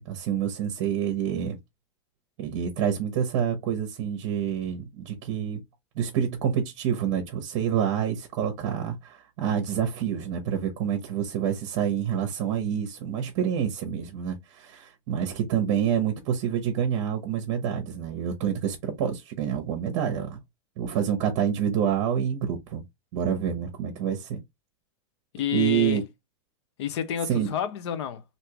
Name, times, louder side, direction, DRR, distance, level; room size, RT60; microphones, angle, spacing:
voice 1, 0.0-1.6 2.4-5.6 6.0-20.4 20.8-22.8 23.1-24.4 25.5-26.0 27.3-27.5, right 8 dB, 45° right, 0.9 m, -27 dB
voice 2, 25.3-26.0 26.8-28.2, left 9 dB, 60° left, 0.8 m, -29 dB
3.5 x 2.7 x 2.9 m
supercardioid pair, 170°, 16 cm